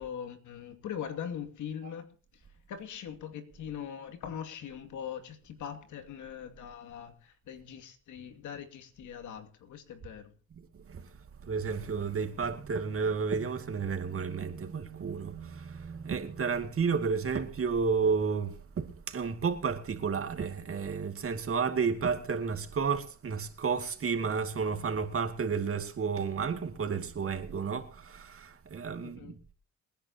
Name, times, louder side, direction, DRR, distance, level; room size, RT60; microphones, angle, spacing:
voice 1, 0.0-10.3 29.0-29.3, left 8 dB, 80° left, 2.5 m, -41 dB
voice 2, 10.5-11.1 11.4-29.4, right 5 dB, 45° right, 2.3 m, -32 dB
27.0 x 10.5 x 2.9 m
cardioid pair, 90°, 30 cm